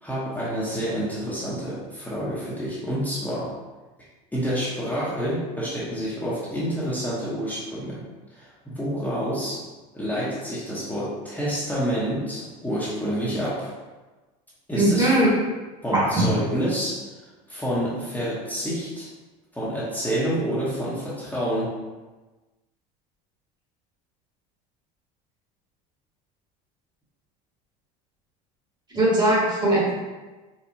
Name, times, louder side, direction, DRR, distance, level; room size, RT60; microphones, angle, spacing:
voice 1, 0.0-3.5 4.3-8.0 8.3-9.6 9.9-13.7 14.7-15.1 15.8-17.0 17.5-19.1 19.5-21.8, equal, 10° left, -9 dB, 0.9 m, -28 dB
voice 2, 14.7-15.3 15.9-16.3 28.9-29.9, right 1 dB, 20° right, -5 dB, 1.2 m, -20 dB
4.4 x 2.2 x 2.8 m, 1.2 s
supercardioid pair, 100°, 20 cm